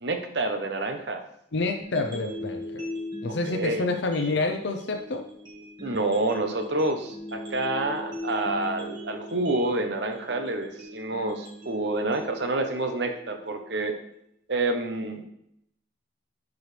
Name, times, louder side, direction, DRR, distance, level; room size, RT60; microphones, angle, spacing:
voice 1, 0.0-1.2 3.5-3.9 5.8-14.0 14.5-15.2, right 2 dB, 60° right, 6 dB, 0.9 m, -28 dB
voice 2, 1.5-2.9 3.2-5.2, left 3 dB, 65° left, 4 dB, 0.7 m, -28 dB
sound 1, 1.8-13.8, equal, 25° right, 1.6 m, -40 dB
10.5 x 4.7 x 3.4 m, 0.75 s
head